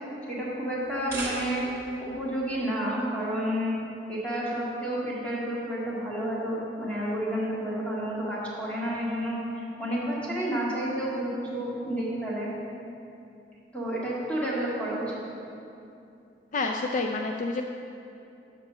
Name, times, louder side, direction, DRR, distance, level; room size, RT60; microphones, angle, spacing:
voice 1, 0.3-1.7 2.0-3.7 4.1-12.5 13.7-15.2, equal, 10° left, -7 dB, 1.9 m, -30 dB
sound 1, 0.8-1.9, right 2 dB, 15° right, 1.4 m, -36 dB
voice 2, 16.5-17.6, left 3 dB, 45° left, 3 dB, 0.4 m, -28 dB
6.8 x 5.8 x 6.7 m, 2.7 s
head